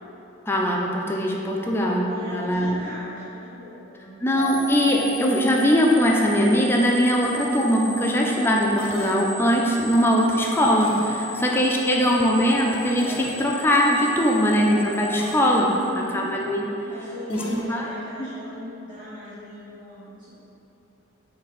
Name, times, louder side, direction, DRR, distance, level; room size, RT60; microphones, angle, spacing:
voice 1, 0.5-2.8 4.2-15.7 16.1-16.6 17.3-17.9 18.2-18.3, equal, 10° left, -1 dB, 0.3 m, -21 dB
voice 2, 2.1-4.2 11.1-12.0 15.7-16.2 16.9-20.3, left 1 dB, 25° right, -15 dB, 1.1 m, -38 dB
sound 1, 4.3-16.4, equal, 10° right, 0.7 m, -35 dB
sound 2, 8.8-9.7 10.8-11.5 13.0-13.8 15.1-15.7 17.3-18.2, left 1 dB, 90° left, 0.5 m, -40 dB
4.1 x 2.7 x 3.9 m, 2.9 s
head